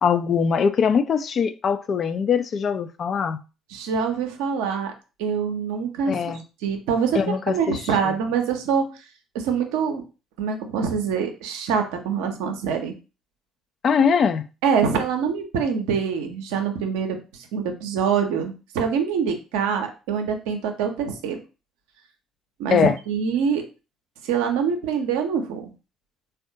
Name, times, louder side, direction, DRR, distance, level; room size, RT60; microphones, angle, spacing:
voice 1, 0.0-3.4 6.1-6.4 7.1-8.2 13.8-14.4 22.7-23.0, left 6 dB, 50° left, 0.3 m, -22 dB
voice 2, 3.7-4.9 5.2-6.2 6.6-8.8 9.3-10.0 10.4-12.9 14.6-21.4 22.6-23.6 24.2-25.7, right 6 dB, 75° right, 0.6 m, -25 dB
3.4 x 2.3 x 2.6 m
hypercardioid pair, 50°, 0 cm